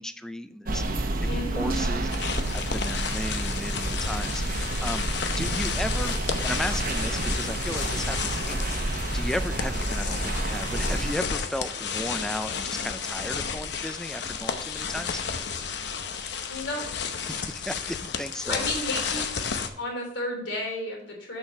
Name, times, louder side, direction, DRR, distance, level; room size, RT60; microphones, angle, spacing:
voice 1, 0.0-5.1 5.4-6.2 6.4-8.9 9.1-15.2 17.2-18.7 19.2-19.3, left 1 dB, 5° left, 10 dB, 0.4 m, -35 dB
sound 1, 0.7-11.1, right 2 dB, 50° right, 1.0 m, -29 dB
voice 2, 1.3-1.7 16.5-16.8 18.5-19.3 19.8-21.4, left 1 dB, 90° left, 0 dB, 3.4 m, -32 dB
sound 2, 2.1-19.7, left 6 dB, 65° left, 0.8 m, -32 dB
7.2 x 6.4 x 5.5 m, 0.73 s
head